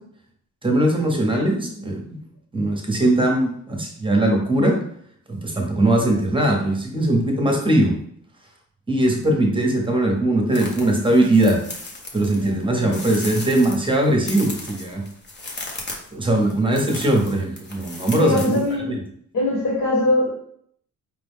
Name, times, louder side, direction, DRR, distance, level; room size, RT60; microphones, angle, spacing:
voice 1, 0.6-2.2 2.5-4.7 5.3-7.9 8.9-11.6 12.1-15.0 16.1-19.0, right 1 dB, 15° right, 0 dB, 0.9 m, -20 dB
sound 1, 10.5-18.7, left 2 dB, 30° left, 0.8 m, -36 dB
voice 2, 12.4-13.1 18.1-18.9 19.3-20.3, left 2 dB, 70° left, -7 dB, 1.6 m, -22 dB
4.8 x 2.3 x 3.5 m, 0.66 s
cardioid pair, 110°, 33 cm